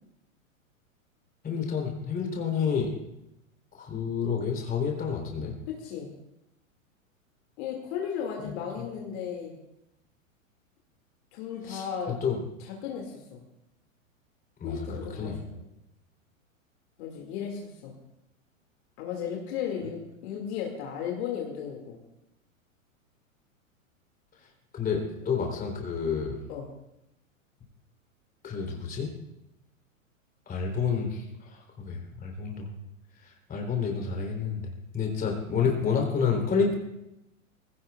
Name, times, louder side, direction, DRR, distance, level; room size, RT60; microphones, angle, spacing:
voice 1, 1.4-2.9 3.8-5.5 8.4-8.6 11.7-12.4 14.6-14.8 15.2-15.4 24.7-25.0 25.3-26.4 28.4-29.1 30.5-31.2 31.8-32.7 33.5-34.6 34.9-36.8, left 6 dB, 20° left, 1 dB, 3.6 m, -29 dB
voice 2, 5.7-6.1 7.6-9.6 11.3-12.1 12.6-13.4 14.6-15.6 17.0-17.9 19.0-22.0 24.9-25.3 26.5-26.7, left 8 dB, 50° left, 0 dB, 2.4 m, -35 dB
20.0 x 17.0 x 2.4 m, 0.87 s
hypercardioid pair, 115°, 41 cm